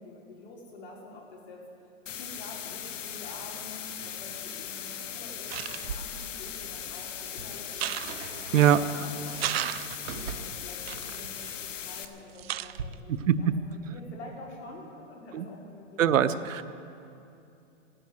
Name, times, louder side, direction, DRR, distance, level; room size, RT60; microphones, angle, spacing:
voice 1, 0.0-1.6 2.1-16.3, left 2 dB, 60° left, -2 dB, 4.4 m, -47 dB
sound 1, 2.1-12.1, left 9 dB, 75° left, 1.2 m, -39 dB
sound 2, 4.7-4.8 5.3-6.1 6.8-7.3 7.7-8.9 9.2-10.3 10.8-12.1 12.3-12.9, right 13 dB, 55° right, 0.4 m, -36 dB
sound 3, 5.8-12.8, right 6 dB, 75° right, 1.6 m, -43 dB
voice 2, 16.0-16.8, right 10 dB, 90° right, 12 dB, 0.9 m, -22 dB
15.0 x 11.5 x 7.9 m, 2.6 s
hypercardioid pair, 155°, 38 cm